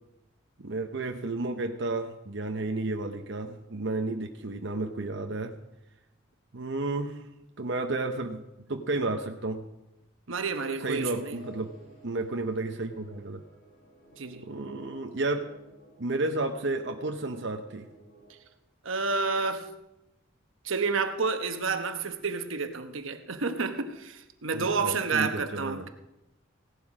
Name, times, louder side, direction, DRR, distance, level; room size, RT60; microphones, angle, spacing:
voice 1, 0.6-5.5 6.5-7.2 7.6-8.4 8.7-9.6 10.8-11.7 12.0-13.4 14.4-15.5 16.0-17.9 24.5-25.9, right 2 dB, 60° right, 4 dB, 0.8 m, -32 dB
voice 2, 10.3-11.4 14.2-14.5 18.8-19.7 20.6-25.9, right 4 dB, 85° right, 8 dB, 1.1 m, -30 dB
sound 1, 10.8-18.3, right 1 dB, 85° left, 5.0 m, -53 dB
16.5 x 11.5 x 4.9 m, 0.94 s
head